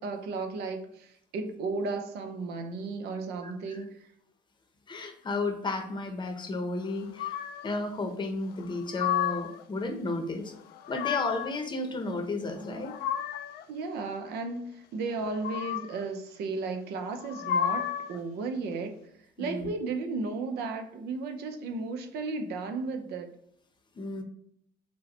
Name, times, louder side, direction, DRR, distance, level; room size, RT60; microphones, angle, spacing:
voice 1, 0.0-4.1 13.7-19.0 19.4-23.3, right 3 dB, 75° right, 0.7 m, -34 dB
voice 2, 4.9-10.6 10.9-13.0 19.4-19.7 23.9-24.2, left 2 dB, 25° left, 0.7 m, -33 dB
sound 1, 7.2-7.8 8.6-9.6 10.6-11.6 12.5-13.6 15.2-16.0 17.1-18.2, left 10 dB, 75° left, 0.4 m, -32 dB
5.3 x 2.2 x 4.1 m
cardioid pair, 110°, 17 cm